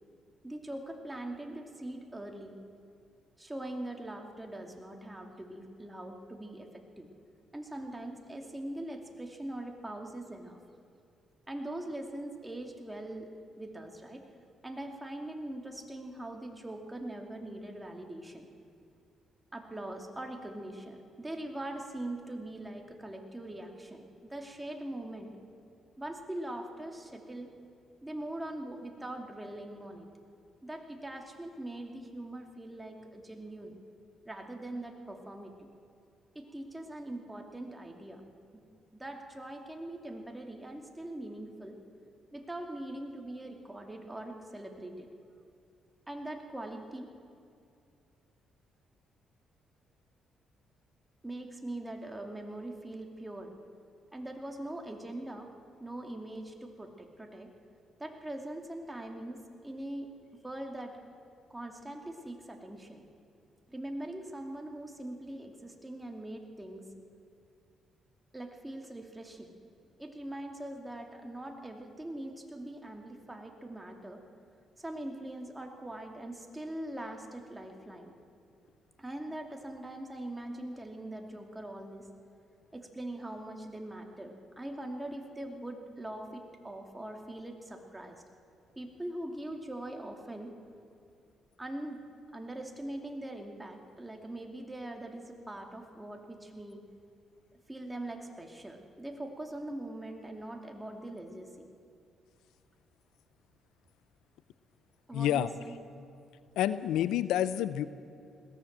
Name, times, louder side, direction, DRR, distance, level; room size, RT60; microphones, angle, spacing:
voice 1, 0.4-2.5 3.4-7.1 7.5-10.6 11.5-13.3 13.6-14.2 14.6-18.5 19.5-25.3 26.0-27.5 28.0-30.1 30.6-33.8 34.3-35.7 36.3-38.2 38.5-38.6 38.9-41.8 42.3-45.1 46.1-47.1 51.2-53.5 54.1-55.5 55.8-57.5 58.0-60.9 61.5-63.0 63.7-66.9 68.3-69.5 70.0-74.2 74.8-78.1 79.0-82.1 82.7-88.2 88.8-90.5 91.6-92.0 92.3-96.8 97.7-101.7 105.1-105.8, right 1 dB, 10° right, 3 dB, 2.6 m, -42 dB
voice 2, 105.1-105.5 106.6-107.9, left 11 dB, 90° left, 14 dB, 0.6 m, -28 dB
21.0 x 17.5 x 7.5 m, 2.5 s
cardioid pair, 90°, 0 cm